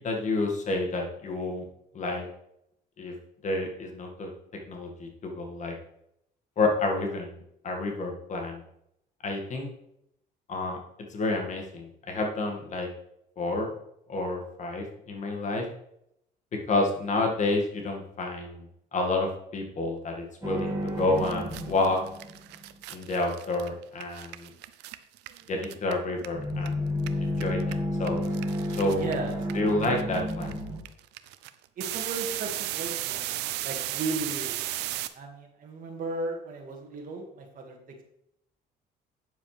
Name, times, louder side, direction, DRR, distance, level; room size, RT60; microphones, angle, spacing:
voice 1, 0.0-1.6 1.9-2.3 3.0-3.1 3.4-4.3 4.7-5.7 6.6-8.6 9.2-9.7 10.5-10.8 11.1-12.9 13.4-13.7 14.1-15.7 16.7-18.7 18.9-22.0 22.9-24.5 25.5-28.2 28.8-29.1 29.5-30.6, left 2 dB, 45° left, 2 dB, 2.0 m, -29 dB
sound 1, 20.4-22.7 26.3-30.8, left 1 dB, 20° right, 2.0 m, -31 dB
sound 2, 20.9-21.0 21.2-26.7 27.0-35.1, right 15 dB, 90° right, 0.6 m, -35 dB
voice 2, 28.9-29.4 31.8-34.5 35.1-37.8, right 3 dB, 55° right, 2 dB, 2.0 m, -35 dB
9.0 x 7.2 x 3.4 m, 0.77 s
cardioid pair, 110°, 17 cm